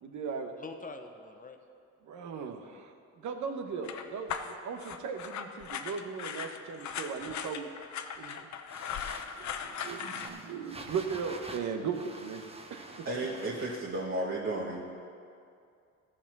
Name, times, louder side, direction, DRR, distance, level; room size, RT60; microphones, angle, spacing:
voice 1, 0.0-0.6 2.0-7.7 8.2-8.5 9.4-12.4 12.7-13.1, right 6 dB, 70° right, 6 dB, 1.0 m, -38 dB
voice 2, 0.6-1.6, left 3 dB, 25° left, 6 dB, 0.9 m, -44 dB
sound 1, 3.8-10.3, left 7 dB, 65° left, 0.7 m, -39 dB
sound 2, 8.7-14.1, right 2 dB, 20° right, 1.0 m, -47 dB
voice 3, 13.0-14.8, right 2 dB, 40° right, -4 dB, 1.5 m, -33 dB
14.5 x 5.0 x 6.0 m, 2.4 s
cardioid pair, 90°, 30 cm